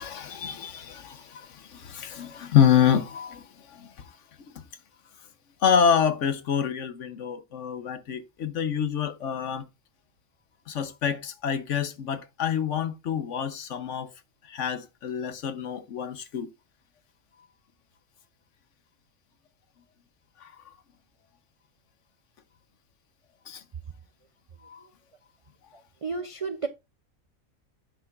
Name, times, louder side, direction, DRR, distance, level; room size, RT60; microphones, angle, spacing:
voice 1, 0.0-3.9 5.6-9.6 10.7-14.1 14.5-16.5 20.4-20.5 23.5-23.6 24.7-24.8, left 8 dB, 65° left, 1.2 m, -27 dB
voice 2, 25.7-26.7, right 4 dB, 60° right, 0.3 m, -33 dB
10.5 x 7.8 x 2.5 m
omnidirectional pair, 1.4 m